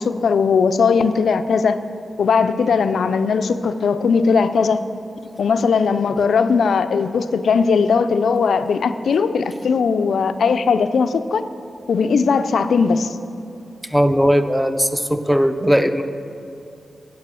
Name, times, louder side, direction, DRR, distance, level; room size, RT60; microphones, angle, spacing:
voice 1, 0.0-1.8 2.2-4.8 5.4-11.4 11.9-13.1, left 5 dB, 75° left, 11 dB, 0.4 m, -18 dB
voice 2, 13.8-16.0, equal, ahead, 9 dB, 0.6 m, -18 dB
9.5 x 6.1 x 6.2 m, 2.7 s
supercardioid pair, 40°, 0 cm